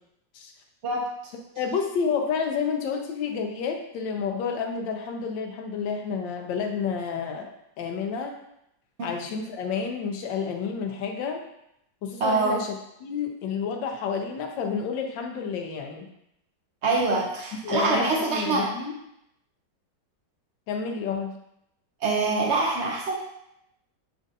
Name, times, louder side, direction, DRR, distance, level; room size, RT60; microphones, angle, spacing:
voice 1, 1.6-7.5 7.8-8.4 9.0-11.4 12.0-12.7 13.0-16.1 17.6-18.9 20.7-21.3, left 6 dB, 85° left, 3 dB, 1.4 m, -30 dB
voice 2, 12.2-12.6 16.8-18.7 22.0-23.1, right 3 dB, 85° right, -2 dB, 0.6 m, -24 dB
7.3 x 2.5 x 2.6 m, 0.80 s
omnidirectional pair, 1.9 m